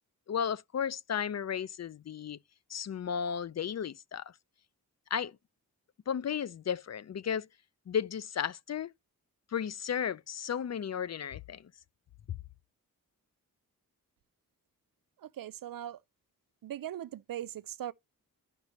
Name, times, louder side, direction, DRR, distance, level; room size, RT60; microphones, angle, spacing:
voice 1, 0.3-2.4 2.7-4.3 5.1-5.3 6.1-7.5 7.9-8.9 9.5-11.7, left 8 dB, 50° left, 0.5 m, -34 dB
voice 2, 15.2-16.0 16.6-17.9, right 11 dB, 70° right, 0.5 m, -40 dB
10.5 x 5.3 x 3.0 m
cardioid pair, 70°, 35 cm